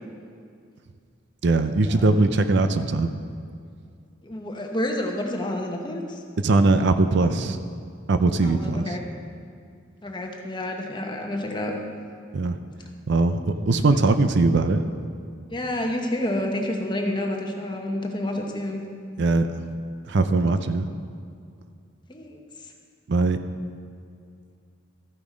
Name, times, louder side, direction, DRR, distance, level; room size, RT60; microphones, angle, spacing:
voice 1, 1.4-3.1 6.4-7.6 8.1-9.0 12.3-12.6 13.1-14.8 19.2-19.5 20.1-20.9 23.1-23.4, right 3 dB, 60° right, 9 dB, 0.5 m, -20 dB
voice 2, 4.2-6.2 8.4-9.0 10.0-11.7 15.5-18.8 22.1-22.4, left 1 dB, 25° left, 2 dB, 1.0 m, -29 dB
13.5 x 7.0 x 5.1 m, 2.3 s
head